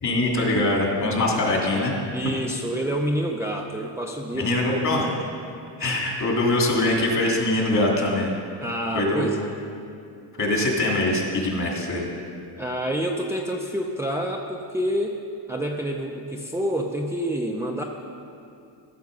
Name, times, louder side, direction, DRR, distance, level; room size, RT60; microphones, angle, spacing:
voice 1, 0.0-2.0 4.3-5.1 5.8-8.3 8.9-9.3 10.4-12.1, left 2 dB, 40° left, -2 dB, 2.8 m, -23 dB
voice 2, 2.1-4.8 8.6-9.4 12.6-15.2 15.5-17.8, right 1 dB, 5° right, 0 dB, 0.6 m, -28 dB
14.5 x 6.9 x 5.4 m, 2.5 s
cardioid pair, 105°, 43 cm